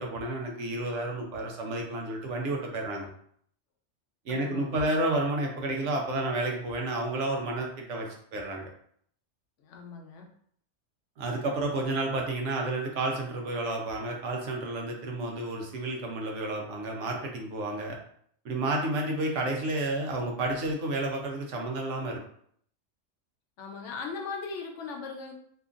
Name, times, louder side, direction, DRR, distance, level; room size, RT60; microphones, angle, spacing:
voice 1, 0.0-3.1 4.3-8.7 11.2-18.0 18.4-22.2, right 2 dB, 80° right, 1 dB, 1.0 m, -31 dB
voice 2, 4.3-4.9 9.6-10.3 23.6-25.3, left 4 dB, 85° left, 2 dB, 0.9 m, -39 dB
2.9 x 2.5 x 2.4 m, 0.64 s
omnidirectional pair, 1.2 m